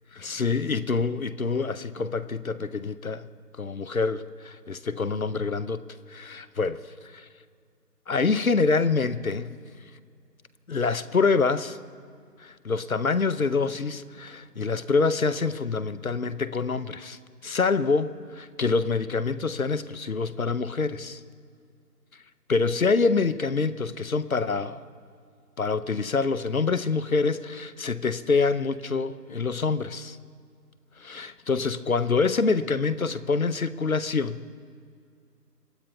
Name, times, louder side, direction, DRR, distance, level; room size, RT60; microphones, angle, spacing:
voice 1, 0.1-3.3 3.6-5.8 6.1-6.8 7.1-7.3 8.1-9.6 10.7-11.8 12.4-21.2 22.5-24.8 25.6-30.2 31.0-34.5, left 4 dB, 60° left, 15 dB, 0.7 m, -26 dB
27.0 x 14.5 x 2.3 m, 2.2 s
figure-of-eight pair, 170°, 48 cm